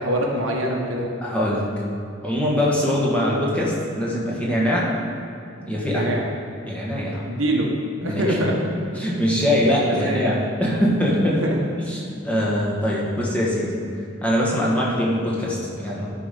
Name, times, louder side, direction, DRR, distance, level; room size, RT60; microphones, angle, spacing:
voice 1, 0.0-1.1 5.9-6.2 7.2-7.7 8.0-8.6 9.4-9.5 9.8-10.2 11.3-11.6 14.9-15.0, right 1 dB, 85° right, -1 dB, 1.5 m, -24 dB
voice 2, 1.2-1.7 2.2-4.9 5.6-6.1 6.7-7.2 8.0-8.5 8.9-11.4 11.8-13.7 14.2-16.1, equal, 5° left, -5 dB, 1.5 m, -22 dB
11.5 x 5.0 x 5.3 m, 2.6 s
head